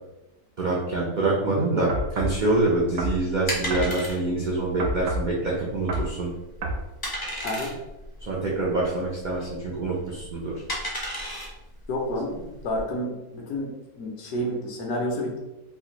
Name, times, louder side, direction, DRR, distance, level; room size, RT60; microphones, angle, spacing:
voice 1, 0.6-6.3 8.3-10.6, right 2 dB, 90° right, -5 dB, 0.4 m, -25 dB
sound 1, 1.9-2.4 3.0-3.2 3.7-3.9 4.8-5.3 5.9-6.1 6.6-6.8, right 1 dB, 70° right, 1.0 m, -28 dB
sound 2, 2.2-12.8, equal, 30° left, 0.4 m, -35 dB
voice 2, 7.4-7.8 11.9-15.4, equal, 70° left, 0 dB, 1.1 m, -30 dB
3.4 x 2.5 x 2.9 m, 0.98 s
omnidirectional pair, 1.6 m